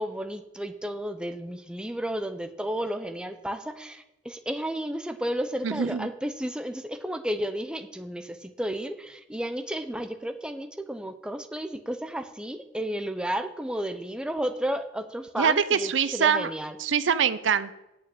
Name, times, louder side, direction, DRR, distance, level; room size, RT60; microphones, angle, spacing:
voice 1, 0.0-16.8, right 1 dB, 5° right, 7 dB, 0.6 m, -32 dB
voice 2, 5.6-6.1 15.4-16.5 16.8-17.7, right 7 dB, 80° right, 14 dB, 0.6 m, -24 dB
8.6 x 6.4 x 8.4 m, 0.91 s
head